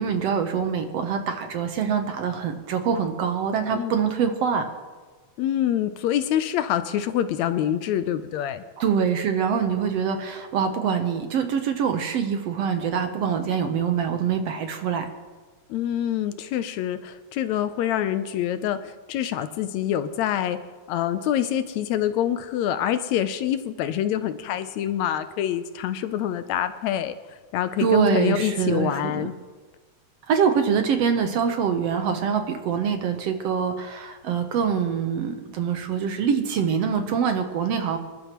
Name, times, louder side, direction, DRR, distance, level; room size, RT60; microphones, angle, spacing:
voice 1, 0.0-4.7 8.8-15.1 27.8-29.3 30.3-38.0, right 7 dB, 65° right, 6 dB, 1.8 m, -24 dB
voice 2, 5.4-8.6 15.7-20.6 20.9-29.4, left 11 dB, 80° left, 11 dB, 1.8 m, -26 dB
26.5 x 12.0 x 3.0 m, 1.4 s
omnidirectional pair, 3.4 m